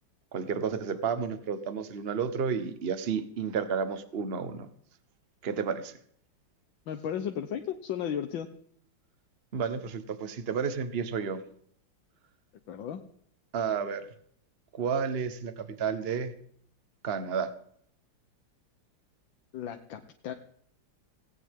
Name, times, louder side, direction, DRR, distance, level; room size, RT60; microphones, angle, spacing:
voice 1, 0.3-4.7 5.4-6.0 9.5-11.4 13.5-14.0 14.7-16.3 17.0-17.5, right 6 dB, 35° right, 10 dB, 1.2 m, -31 dB
voice 2, 6.9-8.5 12.7-13.0 19.5-20.3, left 9 dB, 75° left, 7 dB, 1.7 m, -34 dB
17.5 x 17.0 x 3.7 m, 0.64 s
omnidirectional pair, 2.2 m